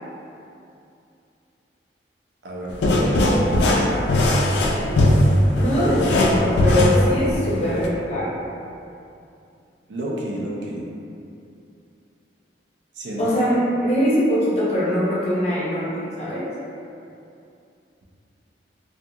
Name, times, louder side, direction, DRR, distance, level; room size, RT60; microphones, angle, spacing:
voice 1, 2.4-3.9 9.9-10.9 13.0-13.4, right 1 dB, 75° right, -4 dB, 0.5 m, -31 dB
sound 1, 2.7-7.9, left 1 dB, 70° left, 0.3 m, -19 dB
sound 2, 4.9-8.3, right 2 dB, 50° right, 0.8 m, -41 dB
voice 2, 5.6-8.3 13.2-16.5, equal, 35° left, -8 dB, 0.7 m, -22 dB
2.5 x 2.3 x 2.7 m, 2.6 s
head